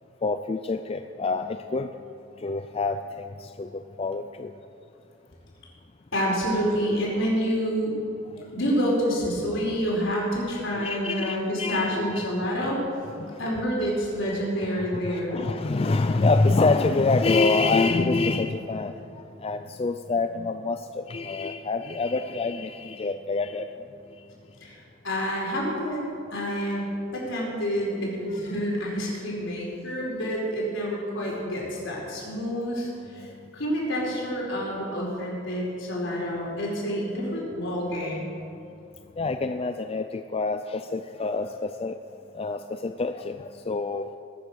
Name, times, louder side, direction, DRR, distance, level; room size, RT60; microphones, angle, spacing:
voice 1, 0.2-1.9 2.4-4.5 8.3-8.4 10.8-12.5 13.2-13.5 13.8-13.9 14.7-23.7 32.3-32.4 33.2-33.3 39.2-42.0 42.3-44.1, left 3 dB, 30° left, 8 dB, 0.4 m, -26 dB
voice 2, 6.1-7.9 8.5-12.8 13.4-15.4 24.6-24.7 25.0-26.0 26.3-33.2 33.5-38.3, equal, 65° left, -3 dB, 4.8 m, -28 dB
20.5 x 9.6 x 6.4 m, 2.6 s
head